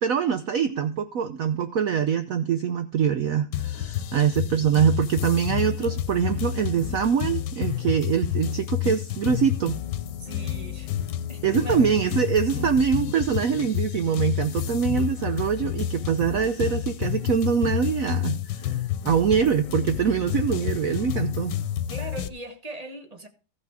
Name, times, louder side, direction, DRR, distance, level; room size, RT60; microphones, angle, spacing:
voice 1, 0.0-9.8 11.4-18.8 19.0-21.5, right 7 dB, 60° right, 0.9 m, -24 dB
sound 1, 3.5-22.3, left 11 dB, 85° left, 1.4 m, -29 dB
voice 2, 10.2-10.9 11.3-12.0 21.9-23.3, right 2 dB, 25° right, 1.3 m, -39 dB
14.5 x 5.9 x 4.7 m
omnidirectional pair, 1.9 m